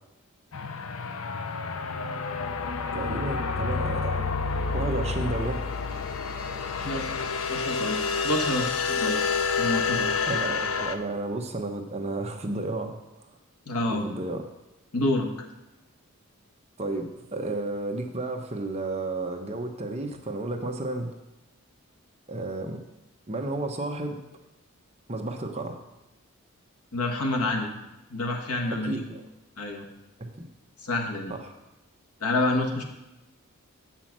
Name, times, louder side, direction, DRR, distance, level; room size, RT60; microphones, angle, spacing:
sound 1, 0.5-11.0, left 5 dB, 70° left, 0.6 m, -29 dB
voice 1, 2.9-4.2 4.7-5.7 10.2-12.9 13.9-14.4 16.8-21.1 22.3-22.8 23.3-24.2 25.1-25.8 28.9-29.2 30.2-30.4 31.3-31.5, right 2 dB, 30° right, 3 dB, 0.9 m, -32 dB
voice 2, 7.5-9.2 9.6-10.1 13.6-14.1 14.9-15.3 26.9-27.7 28.1-29.0 29.6-29.9 30.8-31.3 32.2-32.8, left 2 dB, 90° left, 3 dB, 1.5 m, -28 dB
7.6 x 5.8 x 7.4 m, 0.96 s
head